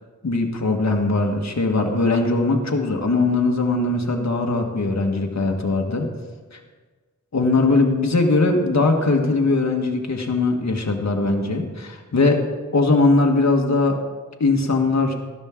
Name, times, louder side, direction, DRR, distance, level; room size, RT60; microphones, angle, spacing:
voice 1, 0.2-6.1 6.5-6.6 7.3-12.4 12.7-14.0 14.4-15.1, left 3 dB, 55° left, 2 dB, 1.5 m, -20 dB
13.0 x 12.5 x 3.7 m, 1.4 s
wide cardioid pair, 75°, 32 cm